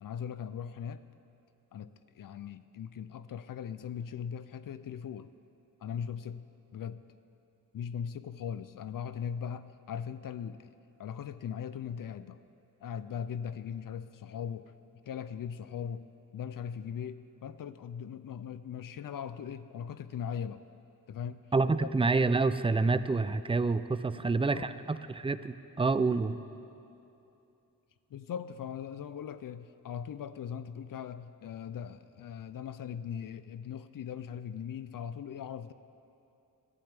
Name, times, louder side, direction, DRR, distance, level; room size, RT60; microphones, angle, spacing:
voice 1, 0.0-1.0 1.7-5.3 5.8-6.5 6.7-7.0 7.7-10.7 11.0-12.4 12.8-14.7 15.1-20.6 21.1-21.4 21.8-21.9 24.2-24.7 28.1-35.7, left 8 dB, 65° left, 13 dB, 0.5 m, -39 dB
voice 2, 21.5-26.4, right 3 dB, 15° right, 13 dB, 0.4 m, -28 dB
21.5 x 12.0 x 3.5 m, 2.8 s
cardioid pair, 75°, 36 cm